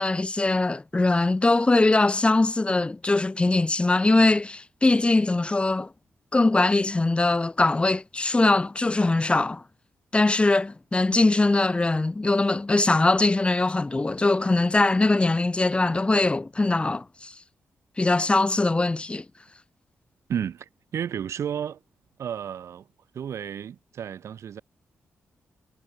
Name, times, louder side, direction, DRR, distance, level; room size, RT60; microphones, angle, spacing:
voice 1, 0.0-5.9 6.3-9.6 10.1-17.3 18.0-19.2, left 2 dB, 20° left, 2.6 m, -22 dB
voice 2, 20.3-21.8 22.2-22.9 23.1-24.6, right 8 dB, 80° right, 3.1 m, -32 dB
cardioid pair, 95°, 5 cm